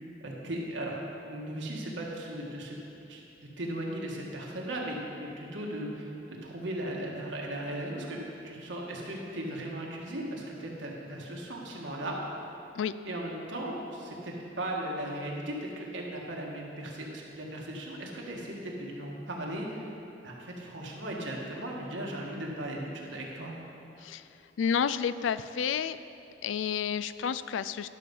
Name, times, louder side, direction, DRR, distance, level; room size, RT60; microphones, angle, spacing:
voice 1, 0.2-2.8 3.1-12.2 13.1-19.9 20.2-23.5, right 1 dB, 75° right, -2 dB, 1.7 m, -37 dB
voice 2, 24.6-26.0 26.4-27.9, left 7 dB, 90° left, 14 dB, 0.3 m, -30 dB
11.5 x 6.8 x 5.4 m, 2.8 s
head